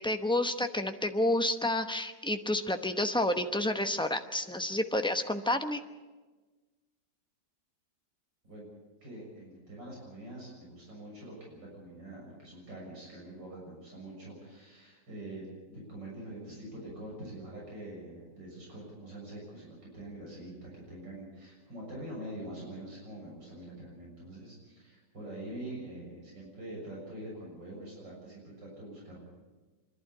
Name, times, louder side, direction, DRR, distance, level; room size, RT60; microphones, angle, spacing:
voice 1, 0.0-5.8, left 1 dB, 5° left, 7 dB, 0.3 m, -30 dB
voice 2, 9.0-15.4 15.7-29.2, right 1 dB, 85° right, -3 dB, 7.6 m, -45 dB
25.5 x 12.0 x 9.6 m, 1.3 s
omnidirectional pair, 1.9 m